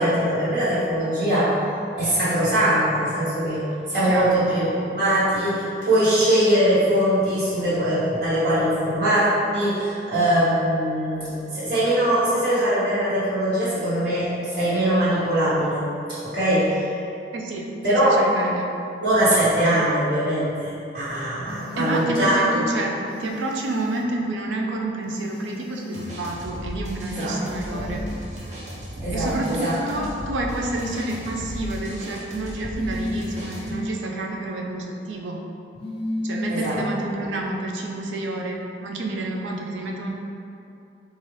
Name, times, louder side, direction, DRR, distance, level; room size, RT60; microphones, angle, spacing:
voice 1, 0.0-1.6 2.0-17.0 17.8-18.2 19.0-22.6 27.1-27.4 27.7-27.9 29.0-29.8 36.5-36.8 37.2-37.3, right 1 dB, 60° right, -11 dB, 1.2 m, -22 dB
voice 2, 4.1-4.4 17.3-18.7 21.8-28.0 29.1-35.4 36.2-40.1, right 2 dB, 90° right, 0 dB, 0.4 m, -29 dB
sound 1, 21.5-22.1 23.1-24.1 25.1-26.1 27.1-28.1 29.1-30.1 30.7-31.8 32.7-33.8 35.7-36.8, left 1 dB, 30° left, 0.3 m, -33 dB
sound 2, 25.9-33.7, equal, 40° right, 0.6 m, -35 dB
4.0 x 2.5 x 3.1 m, 2.6 s
head